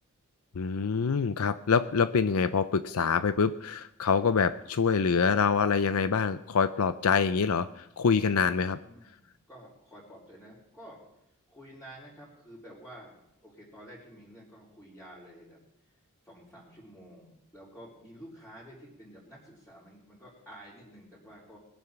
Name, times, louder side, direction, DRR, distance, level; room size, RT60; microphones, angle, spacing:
voice 1, 0.5-8.8, left 5 dB, 75° left, 12 dB, 0.5 m, -25 dB
voice 2, 8.8-11.0 11.5-13.2 13.4-15.6 16.2-21.6, equal, 5° left, -9 dB, 3.7 m, -50 dB
20.5 x 7.5 x 5.9 m, 0.83 s
head